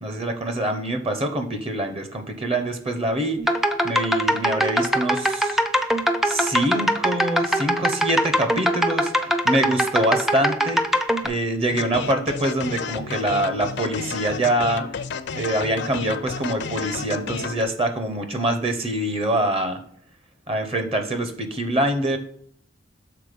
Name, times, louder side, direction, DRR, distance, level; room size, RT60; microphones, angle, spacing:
voice 1, 0.0-3.4 3.8-5.6 6.2-10.8 11.2-14.8 15.3-19.8 20.5-22.2, right 1 dB, 30° right, 7 dB, 0.7 m, -25 dB
sound 1, 3.4-11.3, equal, ahead, 0.4 m, -22 dB
sound 2, 11.7-17.6, left 5 dB, 60° left, 0.5 m, -31 dB
6.7 x 3.9 x 5.1 m, 0.64 s
head